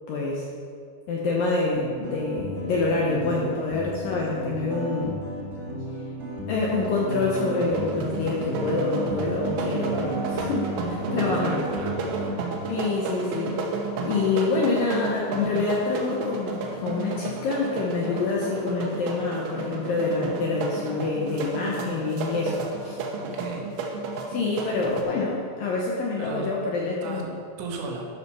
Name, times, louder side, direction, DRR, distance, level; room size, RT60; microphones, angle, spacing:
voice 1, 0.1-0.5 1.1-5.2 6.5-11.6 12.7-13.6 14.0-23.0 24.3-27.3, left 3 dB, 75° left, -3 dB, 2.1 m, -27 dB
sound 1, 1.7-12.3, right 1 dB, 40° right, 0.9 m, -34 dB
sound 2, 6.6-25.0, right 3 dB, 70° right, 2.6 m, -32 dB
voice 2, 11.1-12.1 23.2-23.6 26.2-26.5 27.0-27.2 27.6-28.1, right 4 dB, 90° right, 0 dB, 3.8 m, -36 dB
12.0 x 5.7 x 6.1 m, 2.2 s
omnidirectional pair, 5.2 m